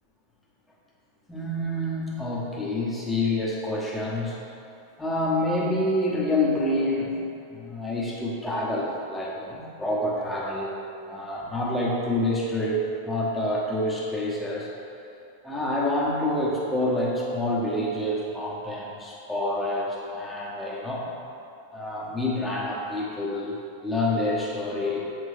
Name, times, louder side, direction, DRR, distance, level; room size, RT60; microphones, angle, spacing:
voice 1, 1.3-4.4 5.0-7.2 7.5-10.7 11.0-14.7 15.4-21.1 21.7-23.6 23.8-25.0, left 1 dB, 5° left, -6 dB, 1.2 m, -27 dB
8.2 x 3.6 x 3.4 m, 2.7 s
figure-of-eight pair, 90°, 0 cm